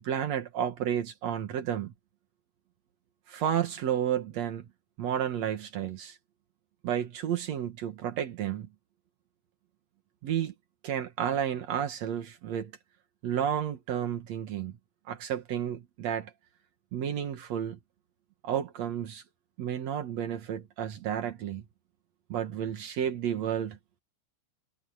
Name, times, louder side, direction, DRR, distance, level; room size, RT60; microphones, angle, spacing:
voice 1, 0.0-1.9 3.3-4.6 5.0-6.2 6.8-8.7 10.2-10.5 10.8-12.7 13.2-14.8 15.1-16.3 16.9-17.8 18.4-19.2 19.6-21.6 22.3-23.8, right 9 dB, 85° right, 1.5 m, -31 dB
omnidirectional pair, 5.4 m